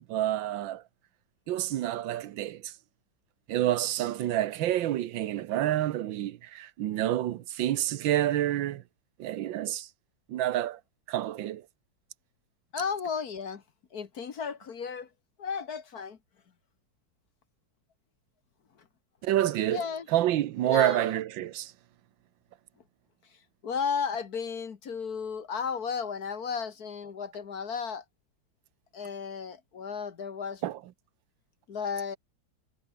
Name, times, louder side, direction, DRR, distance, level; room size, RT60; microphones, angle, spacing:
voice 1, 0.1-0.8 1.5-2.7 3.5-8.8 9.2-9.9 10.3-10.8 11.1-11.6 19.2-19.8 20.1-21.7 30.6-30.8, right 13 dB, 75° right, 1.6 m, -28 dB
voice 2, 12.7-13.6 13.9-15.1 15.4-16.2 19.7-20.1 20.6-21.1 23.6-28.0 28.9-30.6 31.7-32.2, left 6 dB, 50° left, 1.9 m, -34 dB
omnidirectional pair, 2.2 m